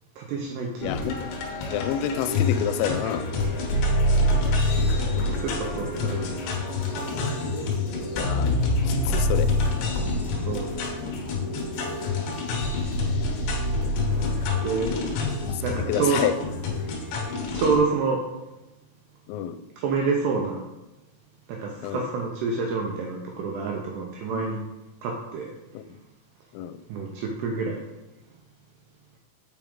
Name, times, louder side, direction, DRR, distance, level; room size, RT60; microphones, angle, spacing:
voice 1, 0.2-0.9 3.0-3.5 4.9-6.4 6.9-7.0 10.5-10.7 14.6-15.0 15.6-16.2 17.5-18.3 19.8-20.6 21.5-24.6 25.0-25.5 26.9-27.8, right 4 dB, 80° right, 1 dB, 2.4 m, -28 dB
voice 2, 0.8-1.2 1.7-3.3 8.2-8.5 8.8-9.5 15.5-16.3 16.6-16.8 19.3-19.6 21.8-22.0 24.3-24.4 25.7-25.8 26.5-26.8, left 10 dB, 90° left, 9 dB, 3.1 m, -28 dB
sound 1, 0.8-17.8, left 2 dB, 70° left, 3.1 m, -26 dB
7.0 x 5.9 x 3.7 m, 1.0 s
omnidirectional pair, 5.5 m